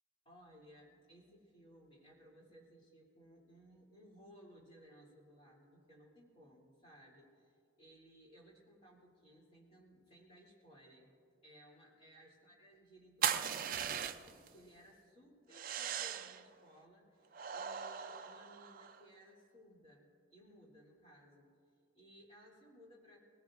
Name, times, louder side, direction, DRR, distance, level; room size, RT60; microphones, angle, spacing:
voice 1, 0.2-11.2 11.4-21.5 21.9-23.2, equal, 30° left, -4 dB, 3.1 m, -61 dB
sound 1, 13.2-14.5 15.5-16.4 17.3-19.0, right 8 dB, 45° right, 0.4 m, -38 dB
20.5 x 18.0 x 2.5 m, 2.4 s
head